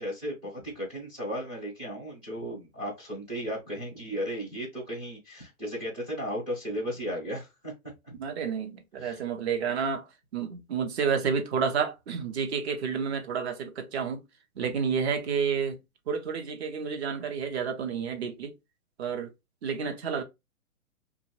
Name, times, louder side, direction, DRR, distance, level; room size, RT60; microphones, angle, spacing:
voice 1, 0.0-7.7 8.0-8.1 9.0-9.2, equal, 10° right, 0.4 m, -35 dB
voice 2, 8.2-10.1 10.3-14.2 14.6-15.8 16.1-18.5 19.0-19.3 19.6-20.2, right 6 dB, 45° right, 0.8 m, -30 dB
2.9 x 2.5 x 2.8 m
hypercardioid pair, 145°, 43 cm